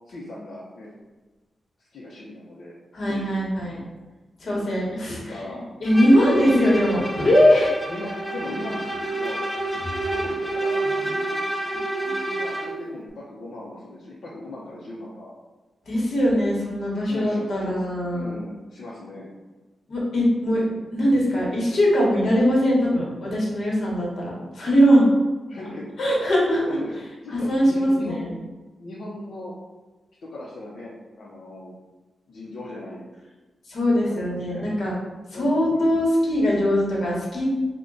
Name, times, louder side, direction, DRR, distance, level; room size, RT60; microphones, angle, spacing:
voice 1, 0.1-0.9 1.8-2.7 3.1-3.4 4.5-4.8 5.1-5.6 7.9-9.4 10.1-10.9 12.3-15.3 17.1-17.8 18.1-19.3 20.6-20.8 25.5-25.9 26.7-26.9 27.2-28.3 28.8-29.5 30.2-30.9 31.2-31.7 32.3-33.0 34.0-34.6 35.3-35.9, left 1 dB, 75° left, -7 dB, 0.6 m, -38 dB
voice 2, 2.9-3.8 4.4-5.2 5.5-7.7 15.9-18.4 19.9-20.6 20.9-25.0 26.0-26.7 27.3-28.3 33.7-34.9 35.3-37.4, equal, 60° left, -4 dB, 1.2 m, -21 dB
Bowed string instrument, 5.8-12.8, right 2 dB, 10° left, 0.4 m, -29 dB
3.6 x 2.2 x 3.8 m, 1.2 s
wide cardioid pair, 135°, 0 cm